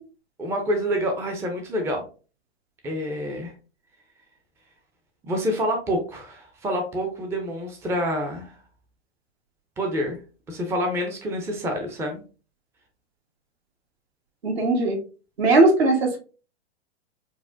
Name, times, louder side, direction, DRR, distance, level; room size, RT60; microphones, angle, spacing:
voice 1, 0.4-2.0 2.8-3.5 5.2-8.5 9.8-10.2 10.5-12.2, equal, 10° right, 3 dB, 0.5 m, -27 dB
voice 2, 14.4-15.0 15.4-16.2, right 2 dB, 65° right, 2 dB, 1.3 m, -19 dB
4.5 x 2.1 x 2.5 m, 0.35 s
figure-of-eight pair, 105°, 34 cm